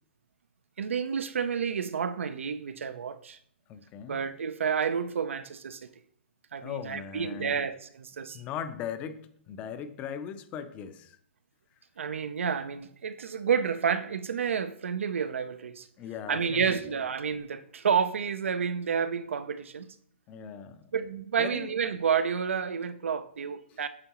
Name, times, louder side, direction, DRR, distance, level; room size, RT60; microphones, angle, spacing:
voice 1, 0.8-3.4 4.1-5.9 6.5-8.4 12.0-15.9 16.3-19.9 20.9-23.9, right 7 dB, 90° right, 0.5 m, -30 dB
voice 2, 3.7-4.2 6.6-7.6 8.2-11.2 16.0-17.0 20.3-20.9 21.4-21.7 23.7-23.8, left 8 dB, 20° left, 0.4 m, -39 dB
8.8 x 3.7 x 3.0 m
hypercardioid pair, 155°, 7 cm